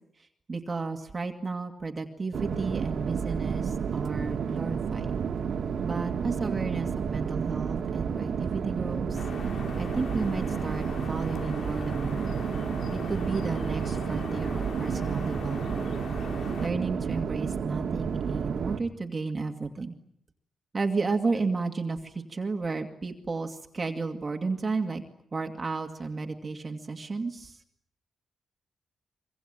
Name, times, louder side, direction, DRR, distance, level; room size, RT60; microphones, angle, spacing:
voice 1, 0.2-5.2 5.8-9.2 9.8-12.4 12.9-15.9 16.6-19.9 20.7-25.0 25.3-27.6, right 4 dB, 30° right, 4 dB, 2.2 m, -33 dB
sound 1, 2.3-18.8, right 7 dB, 70° right, 2.0 m, -31 dB
sound 2, 9.1-16.7, left 5 dB, 70° left, 2.3 m, -41 dB
24.5 x 24.5 x 8.9 m, 0.72 s
cardioid pair, 105°, 0 cm